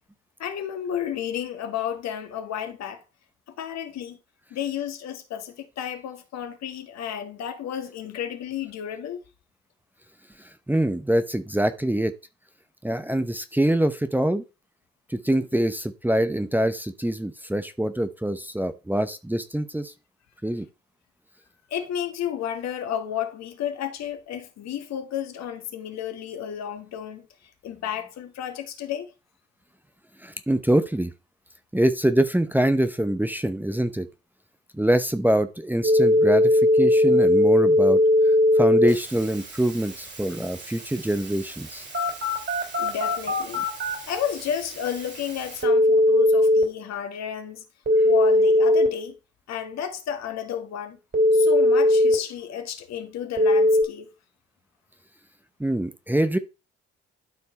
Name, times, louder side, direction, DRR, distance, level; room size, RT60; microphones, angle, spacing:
voice 1, 0.4-3.0 3.6-4.2 4.5-9.2 21.7-27.3 27.6-29.1 42.8-43.6 44.1-47.6 48.0-49.1 49.5-51.0 51.3-54.1, left 9 dB, 60° left, 1.5 m, -32 dB
voice 2, 10.7-12.1 12.8-14.4 15.1-19.9 20.4-20.7 30.2-31.1 31.7-34.1 34.7-38.0 38.6-41.8 55.6-56.4, right 1 dB, 5° right, 0.9 m, -24 dB
Telephone, 35.8-46.6 47.9-48.9 51.1-52.1 53.4-53.8, left 1 dB, 35° right, 4.1 m, -20 dB
12.0 x 4.5 x 4.1 m
hypercardioid pair, 45°, 30 cm